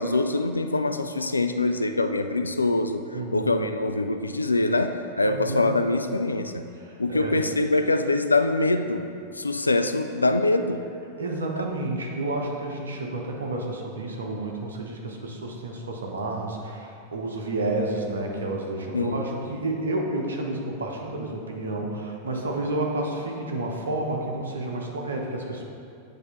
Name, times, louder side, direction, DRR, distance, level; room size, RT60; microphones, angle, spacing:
voice 1, 0.0-3.0 3.3-6.7 7.0-9.1 9.3-10.8 18.9-19.3, left 2 dB, 80° left, 8 dB, 0.3 m, -24 dB
voice 2, 3.1-3.6 5.3-5.7 6.8-7.4 11.2-25.6, right 2 dB, 70° right, 0 dB, 0.9 m, -30 dB
8.2 x 3.5 x 5.4 m, 2.5 s
figure-of-eight pair, 90°, 0 cm